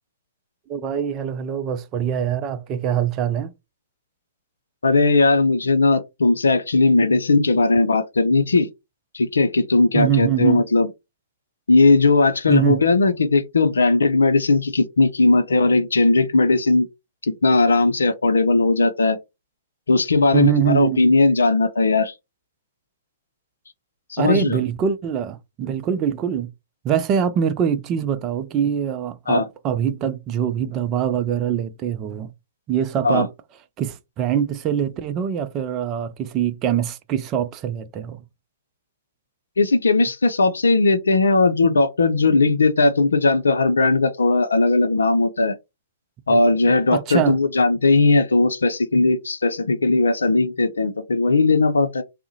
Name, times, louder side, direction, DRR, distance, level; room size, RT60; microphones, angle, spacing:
voice 1, 0.7-3.5 9.9-10.6 12.5-12.8 20.3-21.0 24.2-26.5 26.8-32.3 32.7-33.3 33.8-38.2 46.3-46.4 46.9-47.4, right 8 dB, 30° right, 0.4 m, -23 dB
voice 2, 4.8-8.7 9.1-10.9 11.7-16.9 17.2-19.2 19.9-22.1 24.1-24.6 29.3-29.5 33.0-33.3 39.6-45.5 46.3-52.0, left 3 dB, 80° left, 0.5 m, -18 dB
3.5 x 2.1 x 2.7 m
hypercardioid pair, 120°, 0 cm